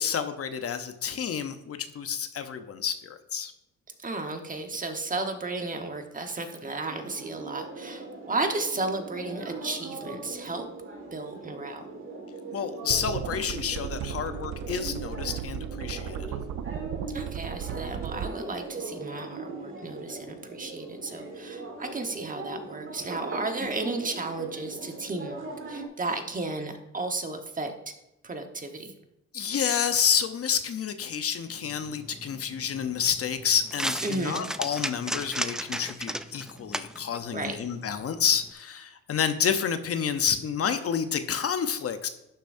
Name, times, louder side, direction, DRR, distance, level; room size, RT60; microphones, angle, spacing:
voice 1, 0.0-3.5 12.5-16.4 23.6-23.7 29.3-42.1, left 7 dB, 50° left, 9 dB, 0.8 m, -29 dB
voice 2, 4.0-10.7 11.1-11.8 17.1-27.9 28.2-28.9 34.0-34.5 37.3-37.6, right 3 dB, 25° right, 5 dB, 1.2 m, -34 dB
sound 1, 6.8-25.9, right 3 dB, 40° right, 1.8 m, -40 dB
sound 2, 12.9-18.3, right 9 dB, 65° right, 0.5 m, -35 dB
sound 3, 31.6-38.5, right 1 dB, ahead, 0.3 m, -36 dB
11.5 x 6.9 x 2.6 m, 0.89 s
cardioid pair, 90°, 30 cm